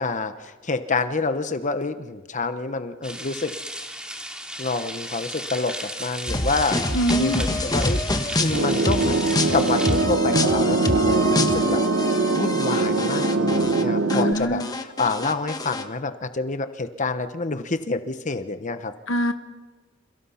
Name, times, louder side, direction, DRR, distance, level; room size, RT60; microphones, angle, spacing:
voice 1, 0.0-3.5 4.6-8.0 8.4-9.2 9.5-18.9, left 3 dB, 40° left, 10 dB, 1.0 m, -28 dB
sound 1, 3.0-10.0, equal, 5° right, 3.1 m, -35 dB
sound 2, 6.3-13.8 14.1-15.8, left 2 dB, 20° left, 1.6 m, -27 dB
voice 2, 6.9-7.4 14.1-14.7 19.1-19.3, equal, 70° left, 8 dB, 1.4 m, -24 dB
sound 3, 8.5-14.3, right 3 dB, 85° right, 1.4 m, -22 dB
30.0 x 27.5 x 5.8 m, 1.3 s
head